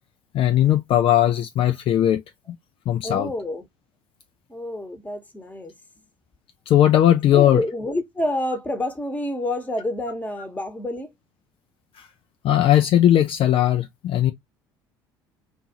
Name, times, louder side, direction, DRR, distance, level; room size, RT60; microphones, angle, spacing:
voice 1, 0.3-2.2 2.9-3.3 6.7-7.6 12.0-12.1 12.4-14.3, left 12 dB, 50° left, 0.4 m, -18 dB
voice 2, 3.0-3.6 4.5-5.7 7.3-11.1, left 1 dB, 15° left, 1.0 m, -28 dB
2.7 x 2.4 x 2.8 m
hypercardioid pair, 65°, 12 cm